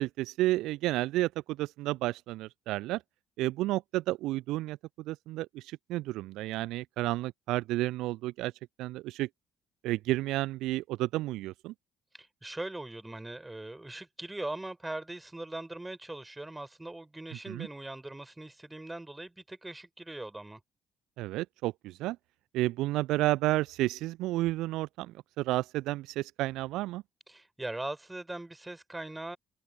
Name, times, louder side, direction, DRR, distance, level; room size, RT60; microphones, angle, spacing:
voice 1, 0.0-3.0 3.4-8.5 8.8-9.3 9.8-11.7 17.5-17.7 21.2-22.2 22.5-27.0, right 17 dB, 60° right, 0.7 m, -31 dB
voice 2, 12.1-20.6 27.3-29.4, right 2 dB, 15° right, 5.6 m, -40 dB
open air
figure-of-eight pair, 45°, 0 cm